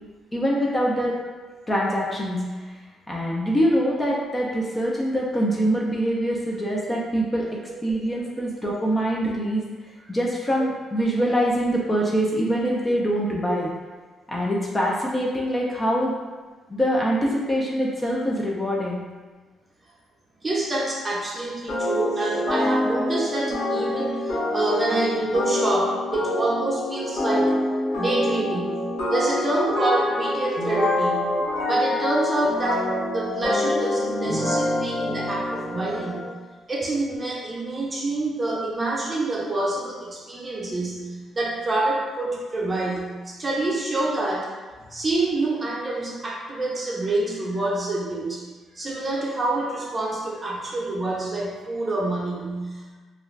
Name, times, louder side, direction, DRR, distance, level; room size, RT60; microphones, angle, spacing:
voice 1, 0.3-1.1 1.7-2.4 3.1-7.5 7.8-9.6 10.1-13.7 14.3-16.1 16.7-19.0, equal, 20° left, -3 dB, 0.5 m, -24 dB
voice 2, 20.4-27.6 27.9-28.7 29.1-31.3 31.7-36.3 36.7-44.5 44.9-48.4 48.8-52.8, right 2 dB, 25° right, -4 dB, 0.7 m, -27 dB
sound 1, 21.7-36.3, left 1 dB, 85° left, 0.7 m, -26 dB
2.4 x 2.2 x 3.2 m, 1.3 s
cardioid pair, 90°, 0 cm